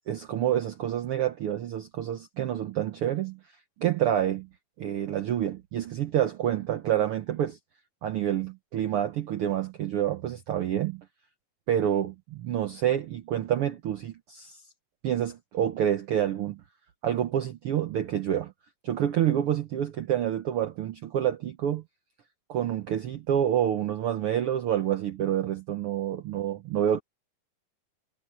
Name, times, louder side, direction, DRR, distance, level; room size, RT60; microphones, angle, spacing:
voice 1, 0.1-3.4 3.8-4.5 4.8-7.6 8.0-11.0 11.7-14.6 15.0-16.6 17.0-18.5 18.8-21.8 22.5-27.0, right 10 dB, 75° right, 1.2 m, -28 dB
omnidirectional pair, 3.7 m